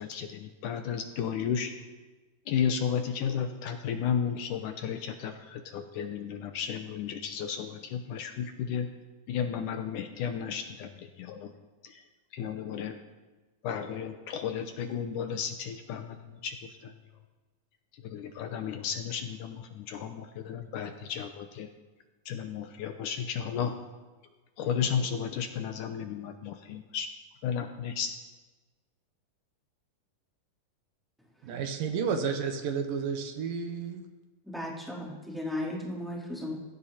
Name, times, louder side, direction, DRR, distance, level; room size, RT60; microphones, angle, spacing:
voice 1, 0.0-1.7 2.5-8.9 9.3-11.5 11.8-11.9 12.3-12.9 13.6-16.6 16.8-16.9 18.1-21.7 22.3-23.8 24.6-27.1 27.4-28.1, left 7 dB, 75° left, 7 dB, 2.2 m, -33 dB
voice 2, 31.4-34.0, right 6 dB, 75° right, 6 dB, 3.0 m, -31 dB
voice 3, 34.4-36.5, left 1 dB, ahead, -5 dB, 3.8 m, -36 dB
20.5 x 16.0 x 4.3 m, 1.3 s
omnidirectional pair, 4.0 m